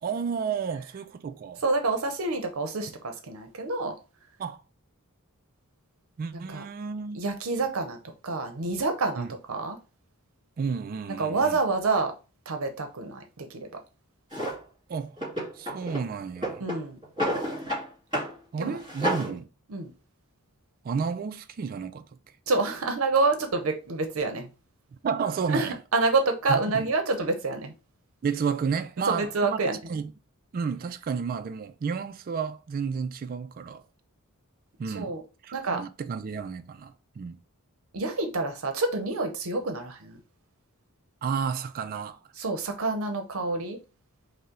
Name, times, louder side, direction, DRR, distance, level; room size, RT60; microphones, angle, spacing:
voice 1, 0.0-1.6 4.4-4.6 6.2-7.2 9.2-9.3 10.6-11.6 14.9-15.2 15.5-16.6 18.5-19.5 20.8-22.1 25.0-25.8 26.5-26.9 28.2-29.6 29.9-30.1 30.5-33.8 34.8-35.1 35.4-37.4 41.2-42.2, right 6 dB, 40° right, 0.3 m, -31 dB
voice 2, 1.6-4.0 6.5-6.6 7.1-8.0 8.2-9.8 11.2-12.1 12.5-13.7 16.6-17.0 18.6-18.8 19.2-19.4 19.7-19.9 22.5-24.5 25.5-27.7 29.1-29.8 34.9-35.2 35.5-35.8 37.9-40.2 42.4-43.8, right 3 dB, 65° right, 0.7 m, -27 dB
Drawer open or close, 14.3-14.6 15.2-16.1 16.4-17.9 18.1-18.3 18.7-19.3, right 1 dB, 20° right, 2.5 m, -30 dB
5.3 x 2.1 x 3.6 m
head